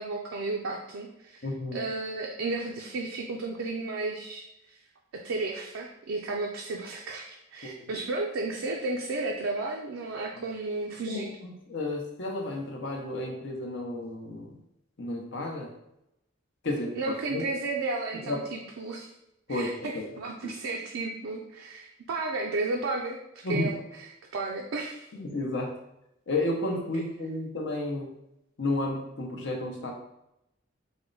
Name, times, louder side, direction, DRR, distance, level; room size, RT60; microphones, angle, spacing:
voice 1, 0.0-1.5 1.7-4.8 5.1-11.3 17.0-19.1 19.5-23.8 24.3-25.1 26.9-27.0, right 3 dB, 75° right, 0 dB, 0.4 m, -33 dB
voice 2, 1.4-1.9 7.6-8.0 11.1-14.5 15.0-15.7 16.6-17.4 18.2-18.4 19.5-19.9 23.4-23.7 25.1-25.7 26.3-28.1 28.6-29.9, left 2 dB, 60° left, 1 dB, 0.7 m, -32 dB
4.2 x 2.1 x 3.8 m, 0.84 s
head